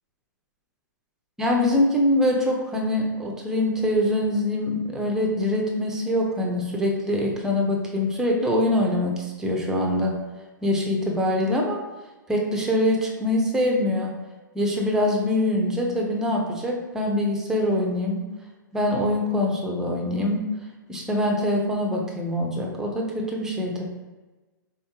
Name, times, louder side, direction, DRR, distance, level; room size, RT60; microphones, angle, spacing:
voice 1, 1.4-10.2 10.6-11.8 12.3-14.1 14.5-18.2 18.7-20.4 20.9-23.8, left 1 dB, 5° right, -1 dB, 0.5 m, -24 dB
3.5 x 3.5 x 2.9 m, 1.2 s
hypercardioid pair, 145°, 11 cm